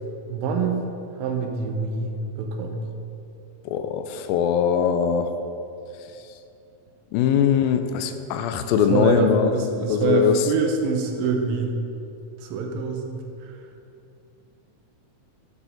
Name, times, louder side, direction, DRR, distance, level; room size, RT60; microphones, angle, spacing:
voice 1, 0.3-0.8 1.2-2.8 8.9-11.7 12.4-13.2, right 5 dB, 85° right, 3 dB, 2.5 m, -25 dB
voice 2, 3.7-5.3 7.1-10.5, left 8 dB, 85° left, 9 dB, 2.3 m, -21 dB
10.0 x 4.8 x 5.0 m, 2.7 s
omnidirectional pair, 4.1 m